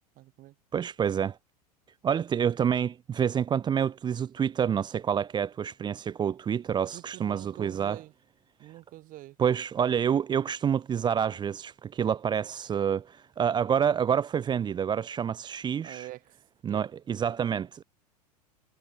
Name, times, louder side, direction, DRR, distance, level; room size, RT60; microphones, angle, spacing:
voice 1, 0.2-0.6 6.9-8.1 8.6-9.4 15.8-16.4 16.6-16.9, right 16 dB, 40° right, 5.4 m, -45 dB
voice 2, 0.7-1.4 2.0-8.0 8.6-8.7 9.4-16.1 16.6-17.8, right 8 dB, 20° right, 0.7 m, -28 dB
figure-of-eight pair, 85°, 21 cm